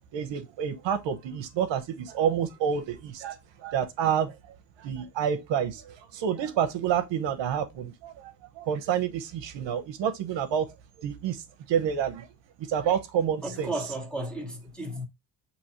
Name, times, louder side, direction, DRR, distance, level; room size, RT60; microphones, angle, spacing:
voice 1, 0.1-4.4 4.8-12.3 12.6-13.7, right 8 dB, 65° right, 0.9 m, -29 dB
voice 2, 13.4-15.1, right 1 dB, ahead, 1.1 m, -34 dB
6.2 x 3.0 x 2.9 m
cardioid pair, 130°, 47 cm